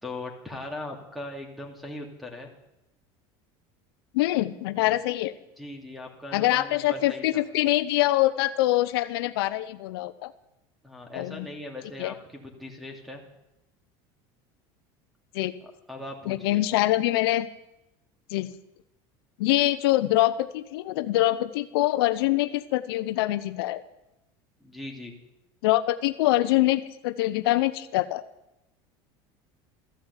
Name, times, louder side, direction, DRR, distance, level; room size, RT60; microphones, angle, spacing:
voice 1, 0.0-2.5 5.6-7.4 10.8-13.2 15.6-16.6 24.6-25.1, left 1 dB, ahead, 3 dB, 2.8 m, -39 dB
voice 2, 4.1-5.3 6.3-10.3 11.1-11.5 12.0-12.1 15.3-15.5 16.3-17.5 18.3-18.5 19.4-23.8 25.6-28.2, left 16 dB, 85° left, 12 dB, 0.8 m, -24 dB
14.5 x 11.5 x 8.3 m, 0.89 s
supercardioid pair, 145°, 12 cm